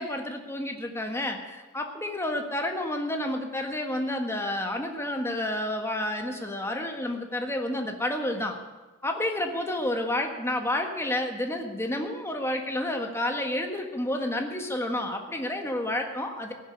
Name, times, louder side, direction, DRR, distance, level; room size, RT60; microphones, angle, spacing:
voice 1, 0.0-8.6 9.0-16.5, left 1 dB, 15° left, 3 dB, 1.6 m, -30 dB
16.0 x 7.4 x 9.6 m, 1.2 s
head